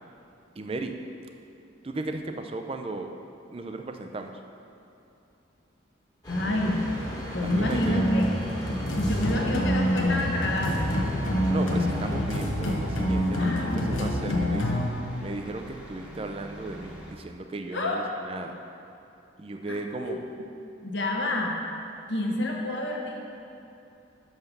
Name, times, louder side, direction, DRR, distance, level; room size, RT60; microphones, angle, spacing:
voice 1, 0.6-0.9 1.8-3.1 3.5-4.4 7.4-8.1 11.5-14.8 15.2-18.5 19.4-20.2, right 2 dB, 30° right, 5 dB, 0.4 m, -35 dB
sound 1, 6.2-12.2, equal, 20° left, 1.2 m, -36 dB
voice 2, 6.3-6.8 7.3-8.4 8.9-11.1 13.4-14.2 17.7-18.0 19.7-20.2 20.8-21.6 22.1-23.2, left 1 dB, 65° left, 0 dB, 1.0 m, -29 dB
sound 2, 7.4-14.9, equal, 80° left, 1.0 m, -27 dB
sound 3, 11.6-17.1, equal, 5° right, 0.9 m, -42 dB
6.6 x 5.7 x 5.9 m, 2.8 s
head